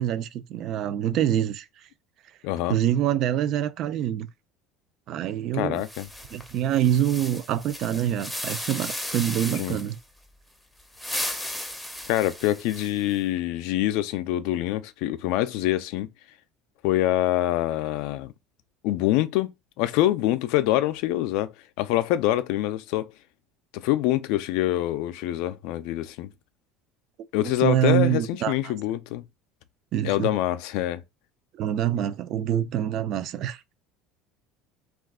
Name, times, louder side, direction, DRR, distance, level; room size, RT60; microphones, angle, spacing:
voice 1, 0.0-1.7 2.7-4.3 5.1-5.8 6.3-10.0 27.4-28.7 29.9-30.3 31.6-33.6, right 11 dB, 50° right, 0.4 m, -25 dB
voice 2, 2.4-2.8 5.6-6.1 9.6-9.8 12.1-16.1 16.8-18.3 18.8-19.5 19.8-23.1 23.7-26.3 27.3-29.2 30.0-31.0, left 14 dB, 70° left, 0.3 m, -25 dB
sound 1, 5.8-10.0 10.8-13.1, left 1 dB, 5° left, 0.5 m, -35 dB
2.3 x 2.3 x 3.6 m
cardioid pair, 130°, 0 cm